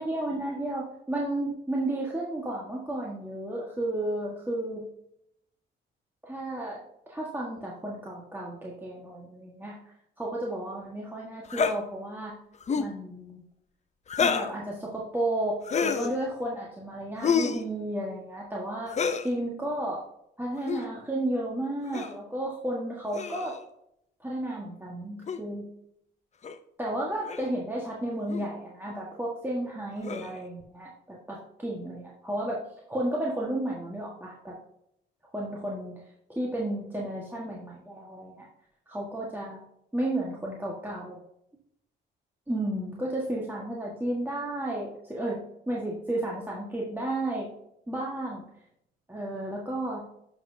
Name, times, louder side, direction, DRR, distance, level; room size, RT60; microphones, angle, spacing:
voice 1, 0.0-4.8 6.2-6.8 7.1-9.7 10.2-12.3 12.7-13.4 14.2-18.9 19.2-20.0 20.4-23.6 24.2-25.7 26.8-34.6 35.3-36.0 36.3-38.5 38.9-39.6 39.9-41.2 42.5-45.4 45.7-47.5 47.9-48.4 49.1-50.0, right 1 dB, 10° right, -4 dB, 1.5 m, -32 dB
sound 1, 11.5-11.8 12.6-12.9 14.1-14.5 15.6-16.1 17.2-17.6 18.9-19.3 20.6-20.8 21.9-22.2 23.1-23.6 25.3-25.4 26.4-26.6 27.3-27.5 28.3-28.5 30.0-30.4, left 6 dB, 35° left, 0.6 m, -28 dB
10.5 x 6.0 x 2.7 m, 0.77 s
cardioid pair, 90°, 20 cm